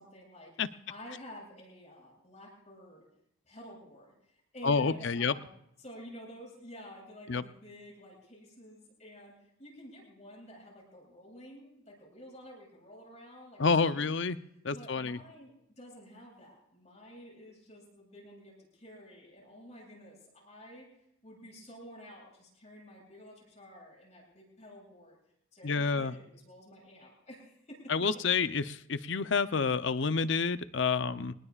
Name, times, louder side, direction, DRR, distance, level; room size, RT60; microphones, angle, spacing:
voice 1, 0.0-0.6 0.9-3.0 3.4-5.5 5.8-9.3 9.6-13.7 14.0-14.1 14.7-20.9 21.2-25.2 25.5-27.9, equal, 35° left, -2 dB, 7.9 m, -50 dB
voice 2, 4.6-5.3 7.3-7.4 13.6-14.4 14.6-15.2 25.6-26.1 27.9-31.3, left 5 dB, 60° left, 12 dB, 0.7 m, -29 dB
26.0 x 20.0 x 2.4 m, 0.77 s
head